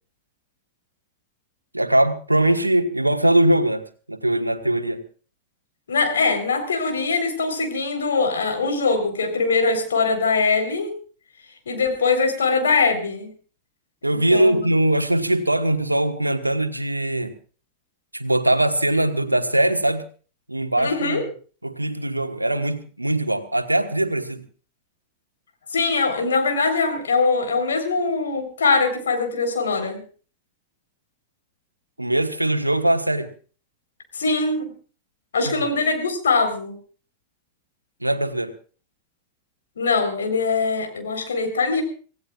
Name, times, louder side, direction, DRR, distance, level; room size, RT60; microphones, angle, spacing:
voice 1, 1.7-5.0 14.0-17.3 18.1-20.0 20.5-21.2 21.6-24.4 32.0-33.3 35.6-35.7 38.0-38.5, right 1 dB, 85° right, 8 dB, 1.3 m, -21 dB
voice 2, 5.9-10.9 11.7-13.3 14.1-14.7 20.8-21.2 25.7-30.0 34.1-34.7 35.3-36.8 39.8-41.8, left 4 dB, 70° left, 5 dB, 4.0 m, -22 dB
26.0 x 17.0 x 2.4 m, 0.39 s
figure-of-eight pair, 90°, 0 cm